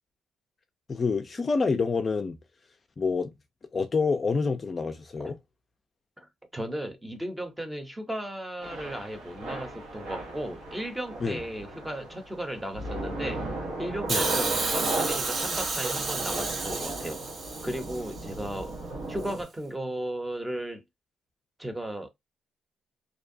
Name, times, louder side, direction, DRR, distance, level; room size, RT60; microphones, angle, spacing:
voice 1, 0.9-2.4 3.0-3.3 3.7-5.3 11.2-11.4 14.1-14.3, left 4 dB, 35° left, 0.4 m, -27 dB
voice 2, 6.2-13.4 13.8-17.2 17.6-18.8 19.1-20.8 21.6-22.1, right 1 dB, 10° right, 0.7 m, -35 dB
Thunder / Rain, 8.6-19.4, right 2 dB, 85° right, 0.9 m, -36 dB
Hiss, 14.1-18.2 19.3-19.4, right 3 dB, 45° right, 0.6 m, -31 dB
2.6 x 2.1 x 2.6 m
cardioid pair, 90°, 0 cm